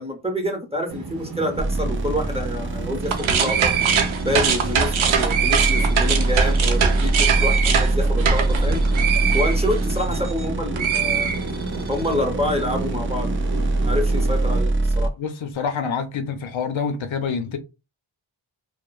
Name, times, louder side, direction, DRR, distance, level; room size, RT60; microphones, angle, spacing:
voice 1, 0.0-3.7 4.2-8.9 9.3-11.4 11.9-15.1, left 1 dB, 15° right, 0.9 m, -27 dB
sound 1, 0.9-14.6, right 2 dB, 50° right, 0.8 m, -33 dB
sound 2, 1.6-15.1, right 2 dB, 30° right, 0.4 m, -23 dB
sound 3, 3.0-10.5 10.8-11.9, right 7 dB, 80° right, 0.6 m, -22 dB
voice 2, 15.2-17.6, left 6 dB, 75° left, 0.6 m, -27 dB
2.9 x 2.1 x 2.3 m
cardioid pair, 60°, 47 cm